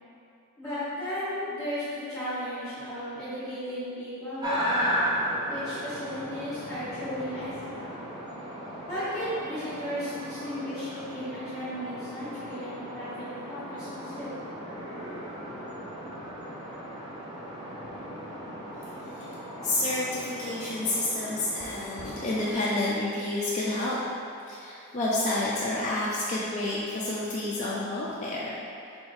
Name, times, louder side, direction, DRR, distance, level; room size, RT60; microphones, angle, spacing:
voice 1, 0.6-5.0 5.4-8.0 8.9-14.3, equal, 10° left, -15 dB, 1.3 m, -35 dB
sound 1, 4.4-22.5, equal, 20° right, 0.7 m, -36 dB
voice 2, 19.6-24.0 24.5-28.6, left 2 dB, 35° left, -7 dB, 0.4 m, -29 dB
4.2 x 3.6 x 3.1 m, 2.7 s
head